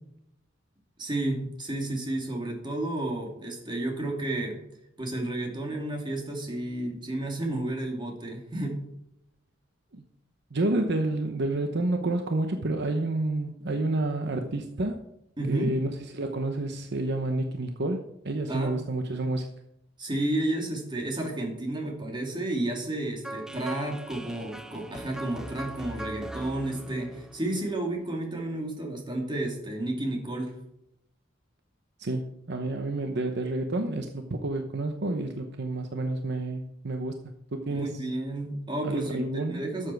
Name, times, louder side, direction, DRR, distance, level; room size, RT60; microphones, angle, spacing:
voice 1, 1.0-4.6 5.0-8.8 15.4-15.8 18.5-18.8 20.0-30.5 37.7-39.9, right 1 dB, 25° right, 1 dB, 2.6 m, -31 dB
voice 2, 10.5-15.0 15.5-19.5 32.0-37.2 37.5-37.9 38.8-39.6, right 2 dB, 60° right, 6 dB, 0.9 m, -29 dB
sound 1, 23.2-28.2, right 1 dB, 5° right, 0.6 m, -41 dB
12.5 x 7.5 x 4.6 m, 0.79 s
head